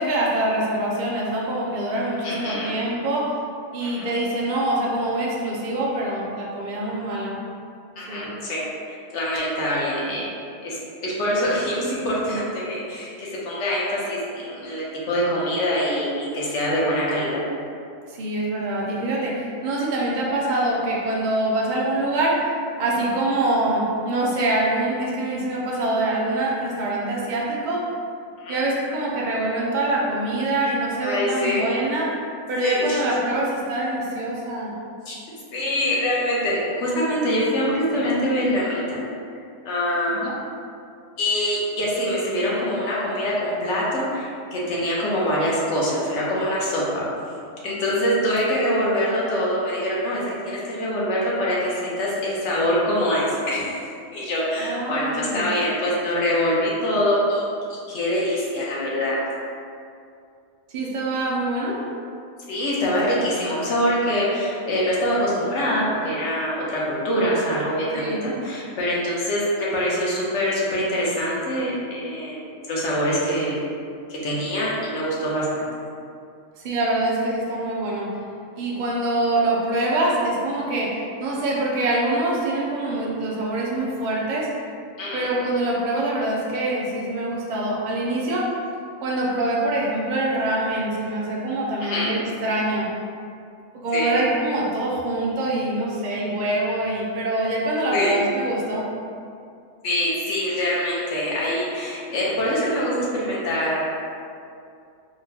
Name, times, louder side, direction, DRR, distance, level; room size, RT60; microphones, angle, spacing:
voice 1, 0.0-3.3 3.7-7.4 8.1-8.3 18.1-22.5 22.8-27.8 28.5-32.1 32.5-34.7 40.1-40.4 47.6-48.1 54.6-55.5 60.7-61.8 67.9-68.2 76.6-78.1 78.6-84.5 85.1-88.5 89.0-92.9 93.7-98.9, right 1 dB, 55° right, -4 dB, 0.5 m, -24 dB
voice 2, 2.2-2.8 3.8-4.1 8.0-10.3 10.6-17.4 28.4-28.6 31.0-31.7 32.6-33.0 35.1-35.2 35.5-39.0 39.6-40.4 41.2-47.0 47.6-53.8 54.1-57.4 57.9-59.2 62.5-73.6 74.1-75.7 85.0-85.4 91.8-92.1 93.9-94.2 97.9-98.2 99.8-103.8, equal, 70° left, -6 dB, 1.0 m, -24 dB
3.8 x 2.1 x 2.7 m, 2.4 s
omnidirectional pair, 1.3 m